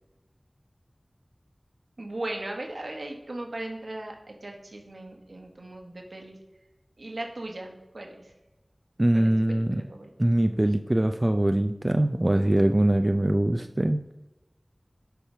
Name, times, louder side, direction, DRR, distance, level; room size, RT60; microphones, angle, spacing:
voice 1, 2.0-6.4 7.0-8.3 9.1-10.1, right 1 dB, 85° right, 2 dB, 1.3 m, -38 dB
voice 2, 9.0-9.8 10.2-14.0, right 1 dB, 35° right, 7 dB, 0.4 m, -23 dB
6.8 x 4.7 x 5.6 m, 1.0 s
wide cardioid pair, 50°, 0 cm